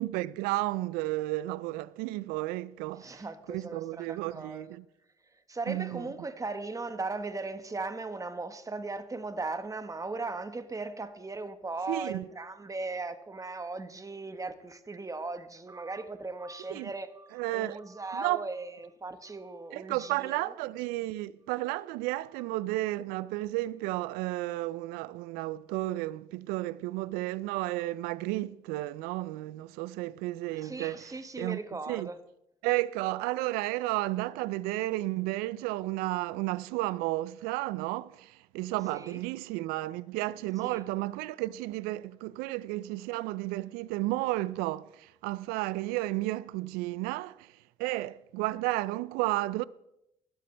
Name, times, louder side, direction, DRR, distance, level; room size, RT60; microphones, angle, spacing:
voice 1, 0.0-4.8 5.7-6.0 11.9-12.2 16.7-16.9 17.3-17.8 18.1-18.5 19.7-31.6 31.9-32.1 32.6-49.6, right 18 dB, 80° right, 0.5 m, -32 dB
voice 2, 3.0-4.8 5.5-20.5 30.6-32.2 38.9-39.2 40.6-40.8, right 3 dB, 20° right, 1.4 m, -38 dB
19.5 x 12.5 x 3.4 m
hypercardioid pair, 55°, 15 cm